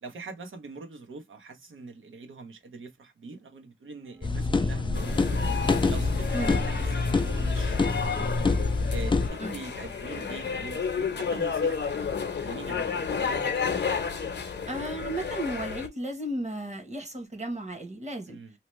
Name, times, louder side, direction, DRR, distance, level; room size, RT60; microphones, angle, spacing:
voice 1, 0.0-5.4 5.9-6.8 7.1-8.5 8.9-12.0 12.4-13.5 18.2-18.5, right 3 dB, 85° right, 0.9 m, -43 dB
sound 1, 4.0-8.7, right 2 dB, 70° right, 1.3 m, -44 dB
sound 2, 4.2-9.3, left 3 dB, 25° left, 0.4 m, -26 dB
sound 3, 4.9-15.9, left 6 dB, 60° left, 0.7 m, -32 dB
voice 2, 14.7-18.4, right 1 dB, 35° right, 1.0 m, -34 dB
2.9 x 2.1 x 3.0 m
wide cardioid pair, 100°, 20 cm